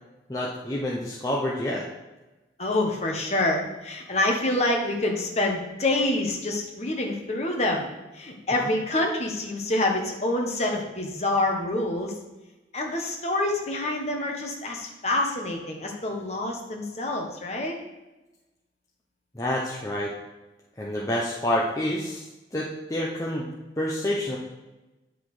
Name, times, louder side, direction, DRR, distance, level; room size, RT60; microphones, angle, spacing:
voice 1, 0.3-1.8 19.3-20.1 20.8-22.2 22.5-24.4, left 1 dB, 20° left, -4 dB, 0.9 m, -28 dB
voice 2, 2.6-7.9 8.1-12.1 12.7-17.8, left 1 dB, 35° left, 1 dB, 1.4 m, -27 dB
9.5 x 6.1 x 5.0 m, 1.1 s
head